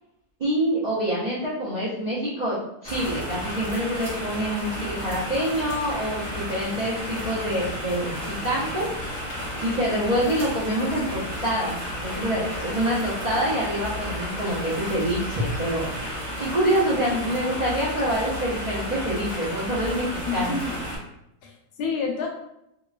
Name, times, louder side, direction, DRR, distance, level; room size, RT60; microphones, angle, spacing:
voice 1, 0.4-2.6 2.8-8.9 9.6-15.9 16.4-20.6, equal, 75° right, -8 dB, 0.3 m, -26 dB
sound 1, 2.8-21.0, equal, 30° left, 0.7 m, -33 dB
voice 2, 20.3-20.8 21.4-22.3, left 5 dB, 80° left, 1 dB, 1.1 m, -29 dB
3.0 x 2.1 x 2.3 m, 0.82 s
omnidirectional pair, 1.7 m